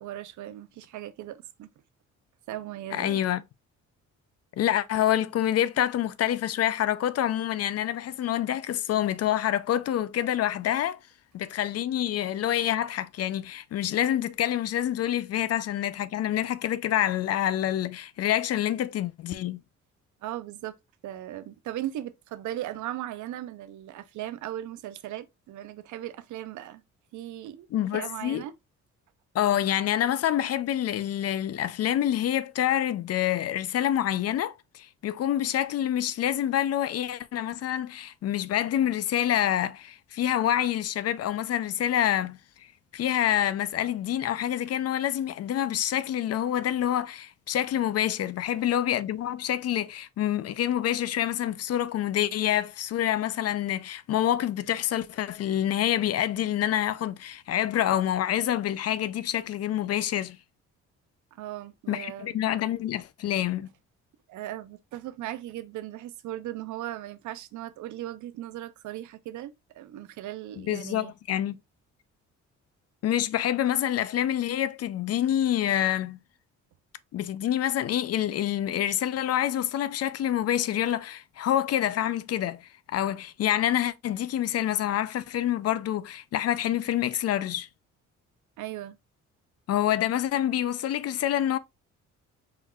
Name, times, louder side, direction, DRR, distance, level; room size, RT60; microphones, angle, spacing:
voice 1, 0.0-1.7 2.5-3.2 20.2-20.7 21.0-26.8 27.1-27.7 27.9-28.5 61.3-62.3 64.3-71.1 88.6-89.0, right 13 dB, 75° right, 0.6 m, -38 dB
voice 2, 2.9-3.4 4.6-11.0 11.3-19.6 27.7-28.4 29.3-42.4 42.9-60.4 61.9-63.7 70.6-71.6 73.0-76.2 77.1-87.7 89.7-91.6, left 11 dB, 55° left, 0.5 m, -27 dB
4.5 x 3.7 x 2.3 m
cardioid pair, 90°, 30 cm